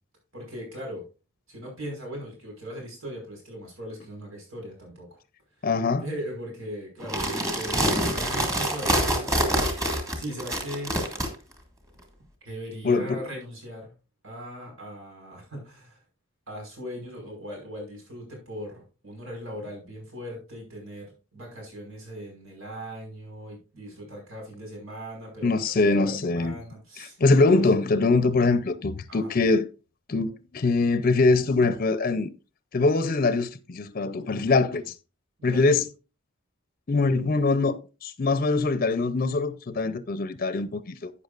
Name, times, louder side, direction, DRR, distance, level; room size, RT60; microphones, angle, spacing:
voice 1, 0.3-1.0 1.5-5.2 5.6-11.0 12.4-13.9 14.2-16.0 16.5-25.6 25.9-27.6 29.1-29.3 35.4-35.7, equal, 80° right, 5.3 m, -39 dB
voice 2, 5.6-6.0 12.8-13.2 25.4-26.6 27.0-29.7 30.1-32.3 32.7-34.9 35.4-35.8 36.9-41.1, left 3 dB, 45° left, 0.6 m, -23 dB
sound 1, 7.0-11.3, right 1 dB, 15° right, 1.9 m, -25 dB
11.5 x 8.6 x 2.5 m
head